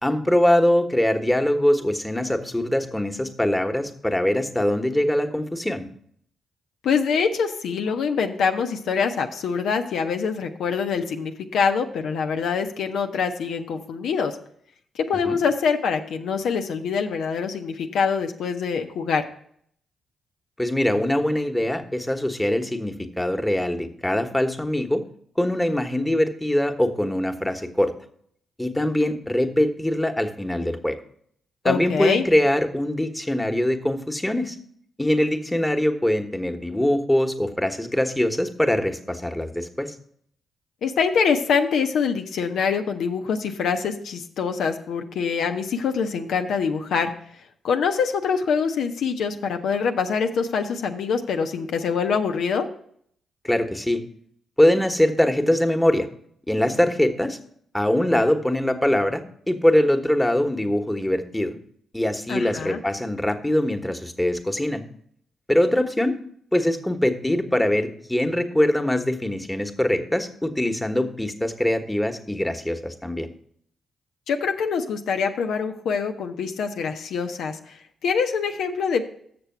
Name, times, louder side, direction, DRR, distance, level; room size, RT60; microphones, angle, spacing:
voice 1, 0.0-5.9 15.2-15.4 20.6-25.0 25.4-27.9 28.6-31.0 31.6-34.6 35.0-39.9 53.4-54.0 54.6-56.1 56.5-57.4 57.7-61.5 61.9-64.8 65.5-66.1 66.5-73.3, left 1 dB, 10° left, 6 dB, 1.1 m, -22 dB
voice 2, 6.8-14.4 15.1-19.2 31.6-32.2 40.8-47.1 47.6-52.7 62.3-62.8 74.3-77.6 78.0-79.1, left 6 dB, 70° left, 5 dB, 0.6 m, -24 dB
6.9 x 6.8 x 5.7 m, 0.64 s
hypercardioid pair, 40°, 0 cm